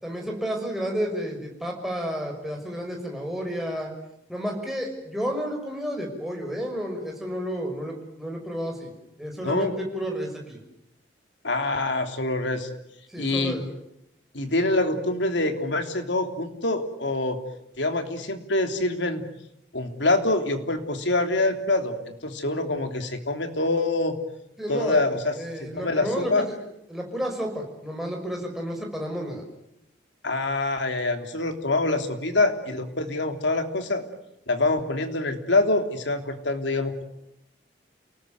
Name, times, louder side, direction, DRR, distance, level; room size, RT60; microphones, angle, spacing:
voice 1, 0.0-3.9 4.3-8.9 9.2-10.6 13.1-13.6 24.6-26.6 26.9-29.4, equal, ahead, 0 dB, 6.1 m, -31 dB
voice 2, 11.4-12.7 13.2-13.6 14.3-17.4 17.8-19.2 19.7-24.1 24.7-25.3 25.6-26.5 30.2-34.0 34.5-37.0, left 2 dB, 80° left, 6 dB, 3.3 m, -25 dB
29.0 x 19.0 x 9.4 m, 0.83 s
head